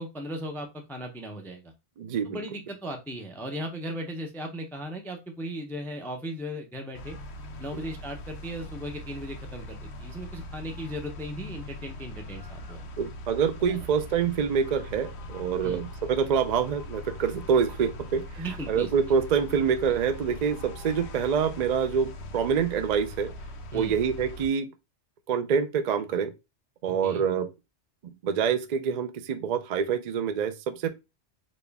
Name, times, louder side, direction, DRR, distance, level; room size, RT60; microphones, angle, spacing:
voice 1, 0.0-1.7 2.2-7.2 7.6-12.9 13.7-13.8 15.6-15.8 18.4-18.9 23.7-24.0 27.0-27.2, equal, 5° left, 0.4 m, -37 dB
voice 2, 2.0-2.4 7.7-7.8 13.0-23.3 23.7-24.7 25.3-26.3 26.8-27.5 28.2-30.9, right 7 dB, 55° right, 0.5 m, -26 dB
sound 1, 6.9-24.5, left 1 dB, 75° left, 0.9 m, -41 dB
4.2 x 2.2 x 3.4 m
omnidirectional pair, 1.2 m